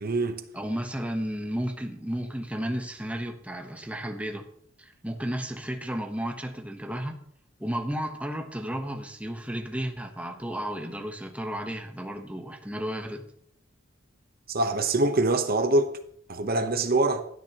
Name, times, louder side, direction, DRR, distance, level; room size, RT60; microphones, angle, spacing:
voice 1, 0.0-0.4 14.5-15.9 16.3-17.2, right 2 dB, 50° right, 1.0 m, -24 dB
voice 2, 0.5-4.5 4.8-7.2 7.6-13.2, equal, 5° right, 1.1 m, -33 dB
16.5 x 12.0 x 3.0 m
head